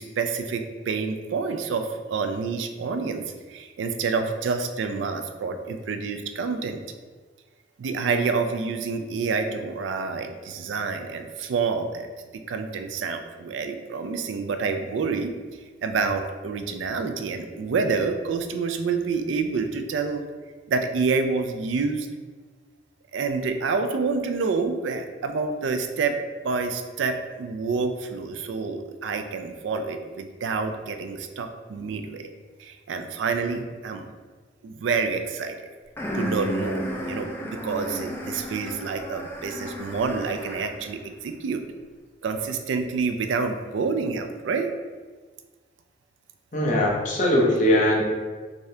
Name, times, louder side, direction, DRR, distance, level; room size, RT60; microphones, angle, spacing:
voice 1, 0.0-6.8 7.8-15.3 15.8-20.2 20.7-22.1 23.1-26.2 26.4-32.3 32.6-34.1 34.6-35.5 36.1-41.6 42.2-44.7, right 4 dB, 90° right, 6 dB, 0.4 m, -28 dB
sound 1, 36.0-40.9, equal, 10° left, 0.3 m, -33 dB
voice 2, 46.5-48.0, left 1 dB, 40° left, -3 dB, 0.7 m, -20 dB
3.5 x 2.7 x 3.2 m, 1.4 s
head